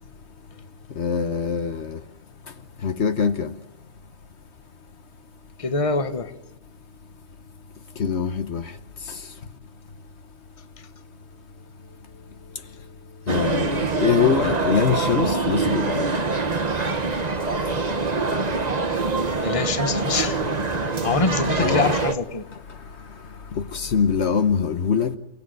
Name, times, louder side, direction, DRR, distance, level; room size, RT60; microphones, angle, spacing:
voice 1, 1.0-2.0 2.8-3.5 8.0-8.6 13.3-16.1 21.6-21.9 23.5-25.2, left 6 dB, 65° left, 1.2 m, -23 dB
voice 2, 5.6-6.3 19.4-20.4 20.7-22.4, left 4 dB, 30° left, 1.2 m, -25 dB
sound 1, 13.3-22.1, right 3 dB, 35° right, 1.3 m, -24 dB
29.5 x 17.0 x 7.7 m
omnidirectional pair, 1.3 m